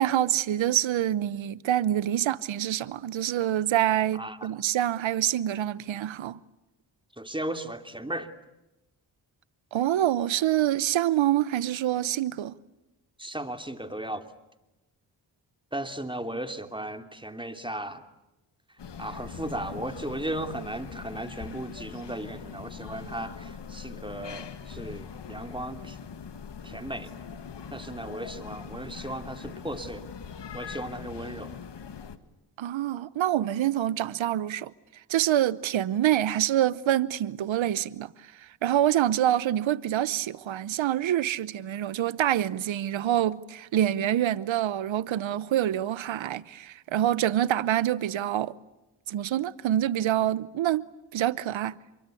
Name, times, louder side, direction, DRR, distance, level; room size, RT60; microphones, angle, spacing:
voice 1, 0.0-6.4 9.7-12.5 32.6-34.7 35.1-48.5 49.1-50.8 51.1-51.8, right 12 dB, 85° right, 0.9 m, -26 dB
voice 2, 4.1-4.5 7.2-8.3 13.2-14.3 15.7-18.0 19.0-26.0 26.6-27.1 27.7-30.1 30.5-31.6, right 1 dB, 10° right, 2.9 m, -36 dB
sound 1, 18.8-32.2, left 6 dB, 65° left, 1.9 m, -42 dB
28.0 x 23.5 x 8.5 m
cardioid pair, 50°, 45 cm